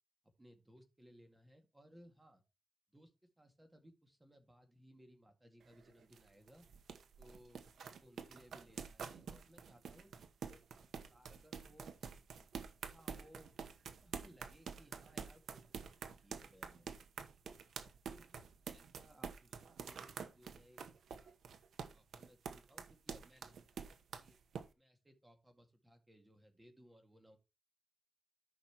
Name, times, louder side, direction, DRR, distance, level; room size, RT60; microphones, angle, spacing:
voice 1, 0.4-2.4 2.9-6.7 7.2-10.1 10.4-12.0 12.8-13.5 14.0-16.9 17.4-17.6 18.1-18.4 18.7-21.4 21.9-24.4 24.8-27.4, equal, 15° right, 5 dB, 1.9 m, -64 dB
sound 1, 5.6-24.6, right 6 dB, 85° right, 1.0 m, -48 dB
13.5 x 5.8 x 2.9 m, 0.26 s
wide cardioid pair, 125°, 0 cm